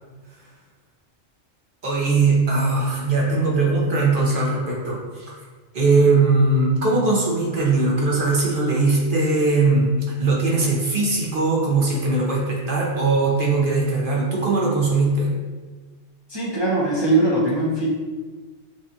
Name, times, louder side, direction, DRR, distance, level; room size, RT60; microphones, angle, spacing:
voice 1, 1.8-5.3 5.7-9.9 10.2-15.3, right 3 dB, 45° right, -4 dB, 1.0 m, -20 dB
voice 2, 16.3-17.9, right 2 dB, 25° right, -7 dB, 0.6 m, -20 dB
6.3 x 2.5 x 2.8 m, 1.4 s
omnidirectional pair, 1.3 m